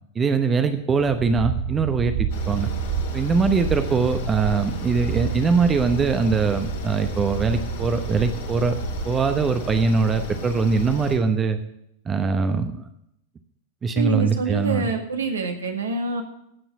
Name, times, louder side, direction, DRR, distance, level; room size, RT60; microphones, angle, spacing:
voice 1, 0.1-2.7 3.1-8.8 9.0-11.6 12.0-12.9 13.8-14.9, right 5 dB, 20° right, 8 dB, 0.9 m, -22 dB
sound 1, 1.0-9.4, right 8 dB, 45° right, 0.9 m, -30 dB
sound 2, 2.3-11.2, left 5 dB, 60° left, 2.3 m, -33 dB
voice 2, 13.9-16.2, right 3 dB, 70° right, 4 dB, 2.0 m, -26 dB
15.5 x 6.1 x 8.0 m, 0.77 s
figure-of-eight pair, 90°, 0 cm